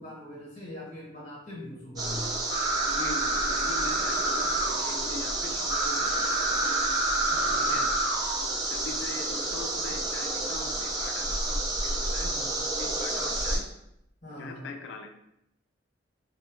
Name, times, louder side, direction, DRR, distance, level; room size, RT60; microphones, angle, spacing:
voice 1, 0.0-2.2 7.3-7.9 12.2-12.5 14.2-14.7, left 1 dB, 35° left, -6 dB, 0.9 m, -42 dB
sound 1, 2.0-13.6, right 2 dB, 20° right, 0.4 m, -28 dB
voice 2, 2.9-6.7 7.6-7.9 8.4-12.4 12.8-13.7 14.4-15.2, left 4 dB, 65° left, 4 dB, 0.3 m, -41 dB
2.6 x 2.2 x 2.9 m, 0.80 s
head